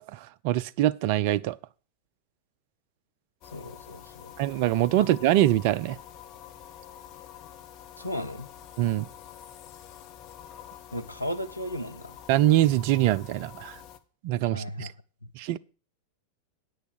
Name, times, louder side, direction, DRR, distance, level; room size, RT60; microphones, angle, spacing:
voice 1, 0.1-1.6 4.4-6.0 8.8-9.1 12.3-13.8 14.2-14.9 15.4-15.6, right 14 dB, 45° right, 0.5 m, -24 dB
sound 1, 3.4-14.0, left 10 dB, 40° left, 1.0 m, -47 dB
voice 2, 3.5-4.3 5.0-5.1 8.0-8.5 10.9-12.2 14.5-14.9, equal, 90° left, 0.8 m, -35 dB
9.4 x 6.4 x 7.8 m
figure-of-eight pair, 90°, 0 cm